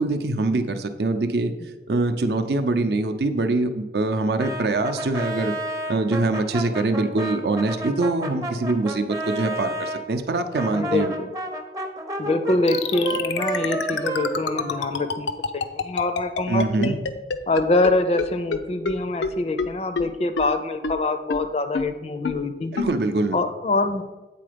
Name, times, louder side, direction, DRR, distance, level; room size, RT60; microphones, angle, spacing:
voice 1, 0.0-1.5 1.9-5.6 5.9-11.1 16.5-17.0 22.7-23.4, right 2 dB, 65° right, 8 dB, 0.5 m, -24 dB
Brass instrument, 4.4-10.0 10.5-15.3, right 1 dB, 20° right, 0.6 m, -31 dB
voice 2, 10.7-11.3 12.2-17.0 17.5-22.7 23.3-24.0, left 2 dB, 35° left, 9 dB, 0.4 m, -25 dB
sound 1, 12.7-17.9 18.2-18.3 18.5-18.6 18.8-18.9 19.2-19.3 19.6-19.7 20.0-20.1 20.4-20.5 20.8-20.9 21.3-21.4 21.7-21.8 22.2-22.3 22.8-22.9, left 5 dB, 85° left, 0.5 m, -25 dB
8.5 x 3.9 x 5.0 m, 1.1 s
head